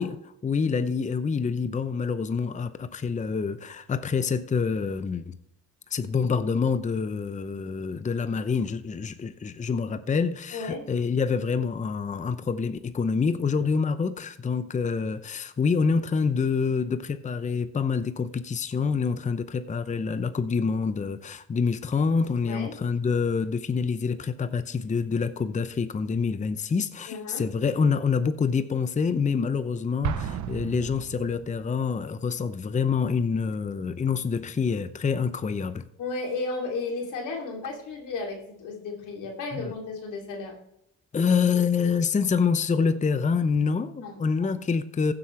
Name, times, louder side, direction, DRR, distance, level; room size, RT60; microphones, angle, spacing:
voice 1, 0.0-5.4 5.9-35.8 39.5-39.7 41.1-45.1, left 5 dB, 25° left, 0.7 m, -26 dB
voice 2, 10.5-10.8 22.4-22.7 27.1-27.4 36.0-40.5 44.0-44.6, left 3 dB, 90° left, 3.0 m, -34 dB
Explosion, 30.0-31.8, right 9 dB, 70° right, 0.9 m, -33 dB
15.5 x 7.8 x 3.3 m
cardioid pair, 90°, 30 cm